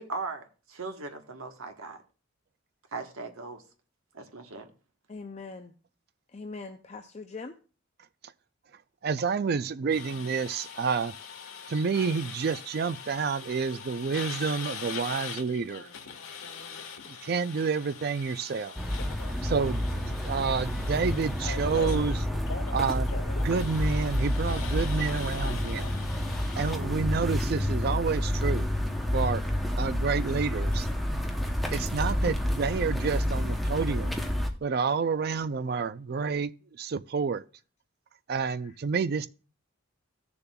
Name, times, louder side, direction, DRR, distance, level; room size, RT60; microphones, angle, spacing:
voice 1, 0.0-2.0 2.9-3.6 4.1-4.7, right 3 dB, 80° right, 1.2 m, -38 dB
voice 2, 5.1-5.7 6.3-7.6 38.6-38.8, left 4 dB, 30° left, 0.4 m, -41 dB
voice 3, 9.0-11.1 11.7-15.9 17.1-18.8 19.4-22.3 22.7-23.1 23.4-26.0 26.6-28.7 29.1-29.4 29.8-30.9 31.7-34.2 34.6-37.4 38.3-39.3, right 5 dB, 45° right, 0.4 m, -29 dB
sound 1, 9.9-26.8, left 5 dB, 90° left, 1.3 m, -42 dB
sound 2, 18.8-34.5, left 1 dB, ahead, 0.7 m, -29 dB
16.5 x 6.8 x 2.3 m
head